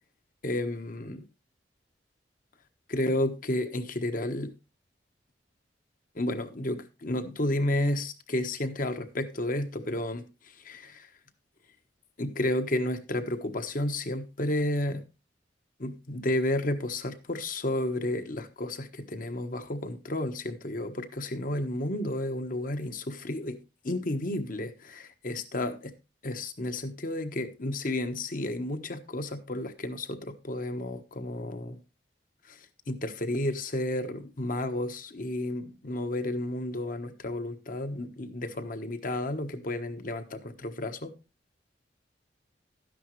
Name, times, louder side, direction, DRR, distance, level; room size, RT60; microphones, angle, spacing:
voice 1, 0.4-1.2 2.9-4.5 6.1-10.3 10.6-11.1 12.2-15.0 15.8-23.6 23.8-25.9 26.2-31.8 32.5-32.6 32.9-41.1, left 1 dB, 50° left, 1.3 m, -32 dB
12.5 x 10.0 x 3.2 m
head